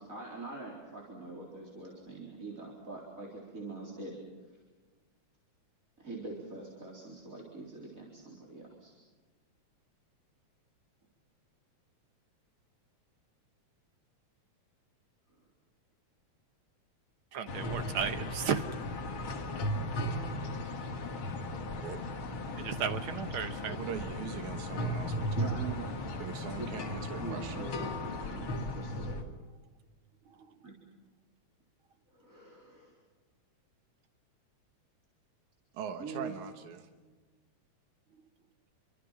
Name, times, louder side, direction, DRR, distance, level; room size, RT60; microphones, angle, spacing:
voice 1, 0.0-4.2 6.0-8.9 17.5-18.0 25.4-25.9 26.5-26.7 27.2-29.2 30.6-30.7 32.1-32.9 36.0-36.3, right 3 dB, 25° right, -3 dB, 4.3 m, -44 dB
voice 2, 17.3-18.6 22.5-23.8 30.4-30.5, right 7 dB, 60° right, 9 dB, 1.6 m, -34 dB
sound 1, 17.5-29.2, left 1 dB, 45° left, 2.6 m, -36 dB
voice 3, 23.6-25.8 26.2-27.8 35.7-36.9, right 8 dB, 80° right, 6 dB, 2.7 m, -41 dB
28.5 x 24.5 x 5.9 m, 1.4 s
omnidirectional pair, 3.3 m